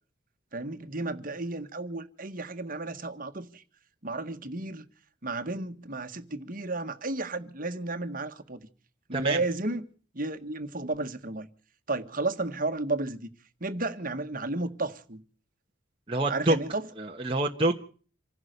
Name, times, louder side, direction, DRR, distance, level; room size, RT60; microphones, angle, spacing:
voice 1, 0.5-3.6 4.0-4.8 5.2-8.7 9.1-9.9 10.1-11.5 11.9-13.3 13.6-15.2 16.3-16.9, right 2 dB, 45° right, 1.7 m, -33 dB
voice 2, 9.1-9.4 16.1-16.6 17.0-17.8, right 2 dB, 25° right, 1.3 m, -26 dB
26.5 x 16.0 x 6.7 m
head